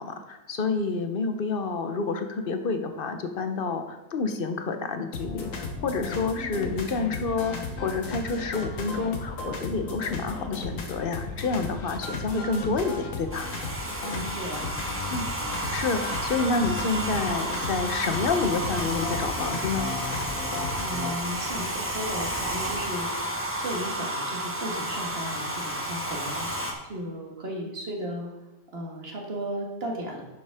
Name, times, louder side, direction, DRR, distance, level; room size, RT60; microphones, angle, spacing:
voice 1, 0.0-13.5 15.1-15.3 15.7-19.9, left 4 dB, 45° left, 7 dB, 0.9 m, -29 dB
sound 1, 5.1-21.1, left 4 dB, 70° left, 1.6 m, -35 dB
Domestic sounds home sounds, 13.3-26.7, right 1 dB, 10° right, 1.1 m, -31 dB
voice 2, 14.0-14.7 20.8-28.3 28.7-30.2, equal, 45° right, 0 dB, 1.9 m, -35 dB
10.5 x 7.0 x 3.6 m, 1.1 s
omnidirectional pair, 1.4 m